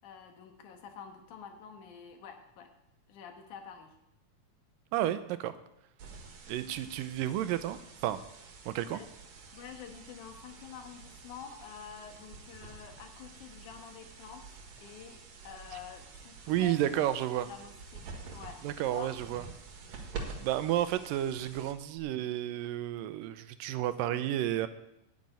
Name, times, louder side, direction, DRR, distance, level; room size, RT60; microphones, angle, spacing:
voice 1, 0.0-2.7 3.1-3.9 8.8-9.1 9.5-14.6 14.8-15.2 15.4-17.1 17.5-18.1 18.3-18.6 18.9-19.1, left 8 dB, 70° left, 4 dB, 2.7 m, -48 dB
voice 2, 4.9-5.6 6.5-8.2 8.7-9.0 16.5-17.5 18.6-19.4 19.9-20.0 20.4-24.7, right 12 dB, 85° right, 12 dB, 2.4 m, -31 dB
sound 1, 6.0-22.0, right 4 dB, 60° right, 2.5 m, -48 dB
9.5 x 7.4 x 9.1 m, 0.84 s
omnidirectional pair, 3.9 m